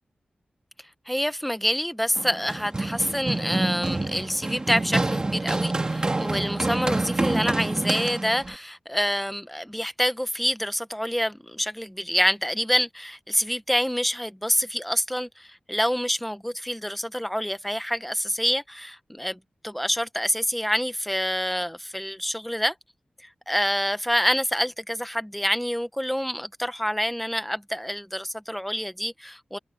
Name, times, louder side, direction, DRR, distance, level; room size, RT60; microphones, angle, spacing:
voice 1, 1.1-22.7 23.5-29.6, equal, 5° left, 1.0 m, -27 dB
Run, 2.2-8.5, right 2 dB, 25° right, 2.6 m, -27 dB
wide cardioid pair, 110°, 3 cm